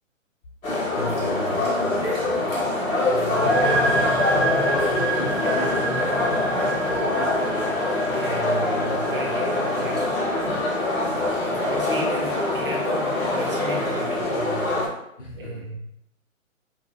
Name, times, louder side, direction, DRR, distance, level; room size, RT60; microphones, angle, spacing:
sound 1, 0.6-14.9, left 2 dB, 90° left, 1.0 m, -24 dB
voice 1, 0.9-2.5 15.2-15.7, left 2 dB, 65° left, -2 dB, 1.1 m, -35 dB
voice 2, 2.9-3.6 4.1-7.2 8.2-10.2 11.1-14.8 15.3-15.8, right 1 dB, 45° right, 0 dB, 0.5 m, -35 dB
sound 2, 3.3-10.7, right 2 dB, 5° left, 0.5 m, -29 dB
2.6 x 2.3 x 2.3 m, 0.77 s
hypercardioid pair, 135°, 39 cm